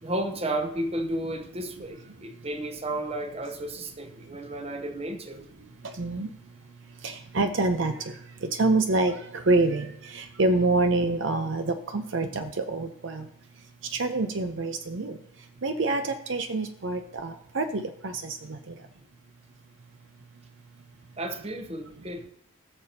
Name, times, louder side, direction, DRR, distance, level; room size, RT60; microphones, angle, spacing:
voice 1, 0.0-5.4 21.2-22.3, right 1 dB, 30° right, 0.9 m, -33 dB
voice 2, 6.0-6.3 7.0-8.1 8.4-13.3 13.9-15.2 15.6-18.6, right 2 dB, 60° right, 0.6 m, -26 dB
20.0 x 6.8 x 2.8 m
head